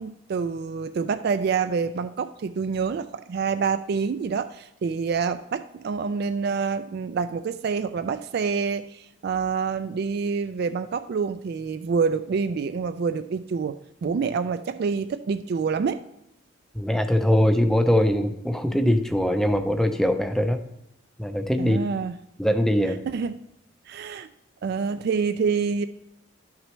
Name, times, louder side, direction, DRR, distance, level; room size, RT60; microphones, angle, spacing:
voice 1, 0.0-13.8 14.0-16.0 21.6-22.1 22.9-23.3 23.9-24.3 24.6-25.8, right 5 dB, 55° right, 10 dB, 0.3 m, -27 dB
voice 2, 16.7-20.6 21.2-21.8 22.4-23.0, equal, ahead, 8 dB, 0.5 m, -22 dB
12.0 x 6.0 x 3.2 m, 0.83 s
head